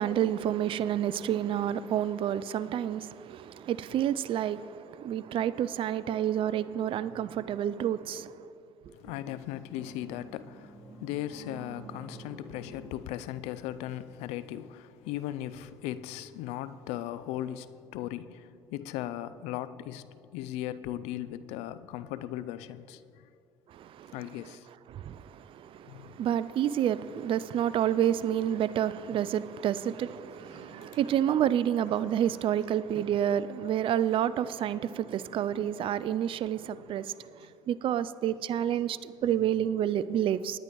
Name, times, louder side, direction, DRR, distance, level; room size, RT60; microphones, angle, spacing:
voice 1, 0.0-8.4 23.7-24.1 24.9-37.1 37.7-40.6, right 10 dB, 55° right, 0.4 m, -29 dB
sound 1, 6.9-8.6 9.0-14.2 15.2-15.3 15.7-15.8, right 4 dB, 35° right, 2.7 m, -51 dB
voice 2, 8.9-23.3 24.1-24.7 25.9-26.2 30.5-31.0 36.6-37.0 37.4-37.5 39.2-39.4, left 13 dB, 80° left, 0.4 m, -38 dB
19.0 x 9.9 x 3.1 m
supercardioid pair, 65°, 11 cm